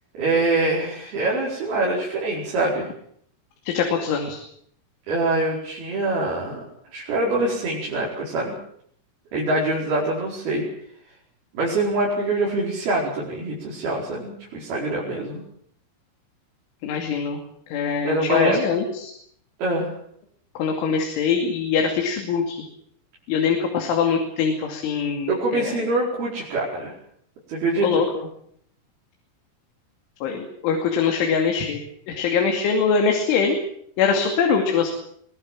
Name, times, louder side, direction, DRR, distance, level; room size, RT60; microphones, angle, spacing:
voice 1, 0.1-2.9 5.1-6.6 6.9-8.5 9.3-10.6 11.5-15.4 18.0-18.6 19.6-19.9 25.3-26.9 27.5-27.9, right 2 dB, 55° right, -4 dB, 6.6 m, -24 dB
voice 2, 3.7-4.4 16.8-17.4 17.7-19.1 20.6-22.6 23.3-25.9 27.8-28.3 30.2-33.6 34.0-34.9, left 6 dB, 85° left, 3 dB, 5.0 m, -23 dB
24.0 x 19.5 x 7.6 m, 0.67 s
omnidirectional pair, 5.4 m